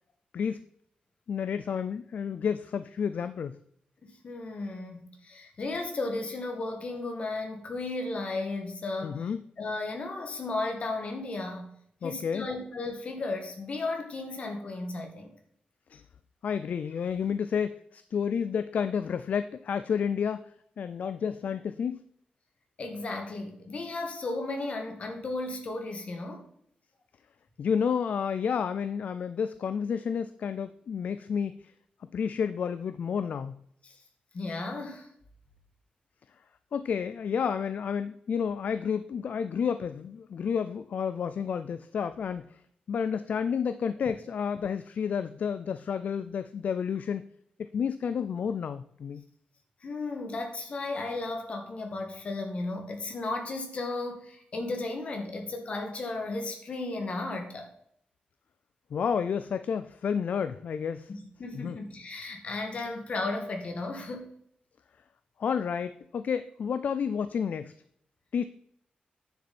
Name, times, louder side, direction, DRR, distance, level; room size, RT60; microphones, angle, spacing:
voice 1, 1.3-3.6 9.0-9.4 12.0-12.5 15.9-16.0 16.4-20.5 20.8-22.0 27.6-31.7 32.1-33.6 36.7-42.6 42.9-47.2 47.6-49.2 58.9-61.1 61.5-61.8 65.4-67.7 68.3-68.4, left 7 dB, 60° left, 12 dB, 0.4 m, -30 dB
voice 2, 4.0-9.3 9.6-11.7 12.0-15.3 22.8-26.5 33.8-34.0 34.3-35.1 49.8-57.7 61.1-64.3, left 2 dB, 45° left, 4 dB, 1.9 m, -34 dB
9.6 x 7.0 x 4.3 m, 0.70 s
wide cardioid pair, 155°, 3 cm